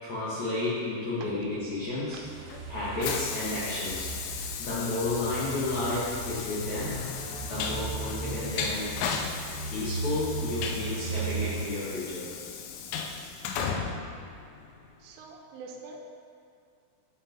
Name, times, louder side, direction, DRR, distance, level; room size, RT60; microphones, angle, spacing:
voice 1, 0.0-2.2 2.7-7.0 7.4-8.9 9.6-12.3, left 2 dB, 75° left, -10 dB, 1.7 m, -32 dB
Train, 1.9-15.0, left 6 dB, 90° left, 2.4 m, -36 dB
sound 1, 2.2-11.6, right 3 dB, 70° right, 3.5 m, -37 dB
voice 2, 15.0-16.0, right 4 dB, 85° right, 1 dB, 3.3 m, -45 dB
11.0 x 3.8 x 4.3 m, 2.4 s
omnidirectional pair, 5.6 m